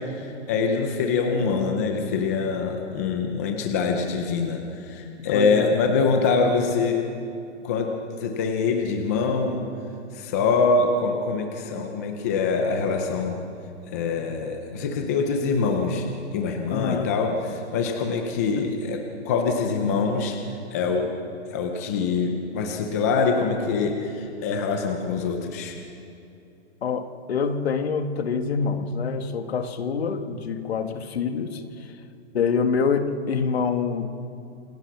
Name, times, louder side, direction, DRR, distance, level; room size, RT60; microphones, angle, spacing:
voice 1, 0.0-7.0 7.6-7.9 8.2-9.6 10.1-13.4 13.9-20.4 20.7-21.1 21.5-25.8, left 4 dB, 15° left, 4 dB, 0.7 m, -24 dB
voice 2, 5.3-5.9 16.7-17.1 18.6-18.7 26.8-31.9 32.3-34.1, left 5 dB, 60° left, 7 dB, 1.9 m, -26 dB
27.5 x 19.0 x 6.1 m, 2.7 s
hypercardioid pair, 180°, 35 cm